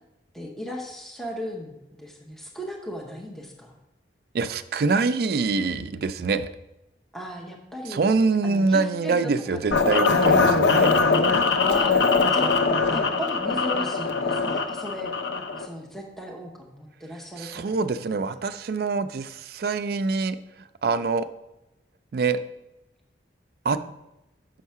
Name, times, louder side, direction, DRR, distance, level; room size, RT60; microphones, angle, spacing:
voice 1, 0.3-3.7 7.1-8.1 8.4-10.7 11.6-12.5 12.9-15.1 15.6-18.4 23.7-23.9, equal, ahead, 0 dB, 0.8 m, -36 dB
voice 2, 4.3-6.5 7.9-10.5 10.8-10.9 17.4-20.4 20.8-21.3 22.1-22.4 23.6-23.8, right 4 dB, 55° right, 12 dB, 0.4 m, -24 dB
sound 1, 9.7-15.7, left 4 dB, 75° left, 0.6 m, -21 dB
6.3 x 4.6 x 5.6 m, 0.92 s
head